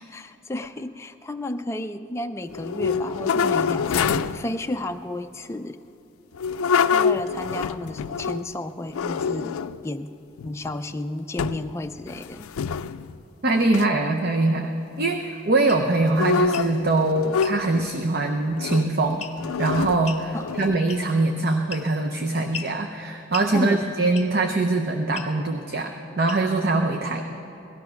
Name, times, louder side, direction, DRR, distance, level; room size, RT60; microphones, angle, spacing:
voice 1, 0.0-5.8 6.9-9.6 9.8-10.1 10.4-12.5 20.3-20.5 23.5-23.9, left 1 dB, 15° left, 6 dB, 0.3 m, -32 dB
sound 1, 2.5-4.5 6.3-8.5 8.9-9.9 10.4-11.0 11.4-11.7 12.0-13.2 13.7-13.9 16.0-18.0 18.6-18.9 19.4-21.0, left 6 dB, 90° left, 0.4 m, -26 dB
voice 2, 13.4-14.7 15.0-19.2 19.6-27.2, right 2 dB, 50° right, 4 dB, 0.7 m, -23 dB
sound 2, 15.7-15.9 16.4-16.7 17.4-17.6 19.2-19.5 20.0-20.3 20.9-21.2 21.7-22.1 22.5-22.8 23.3-23.5 24.1-24.4 25.1-25.3 26.3-26.6, left 6 dB, 30° left, 0.9 m, -37 dB
18.0 x 13.0 x 5.8 m, 2.9 s
head